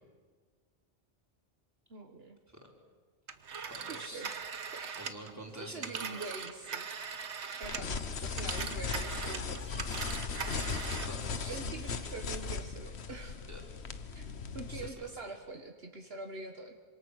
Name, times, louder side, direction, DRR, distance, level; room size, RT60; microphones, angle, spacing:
voice 1, 1.9-2.4 3.9-5.0 5.6-6.9 7.6-9.8 11.5-13.4 14.2-14.3 14.5-16.7, right 3 dB, 65° right, 4 dB, 1.7 m, -44 dB
Telephone, 3.3-8.0 8.3-11.2, right 6 dB, 85° right, 1.5 m, -40 dB
voice 2, 3.7-4.3 5.0-6.2 11.0-11.8 13.5-13.6 14.7-15.1, right 1 dB, 15° right, 0 dB, 3.9 m, -47 dB
sound 1, 7.6-14.9, left 5 dB, 75° left, 1.4 m, -38 dB
26.5 x 26.0 x 6.5 m, 1.5 s
omnidirectional pair, 1.1 m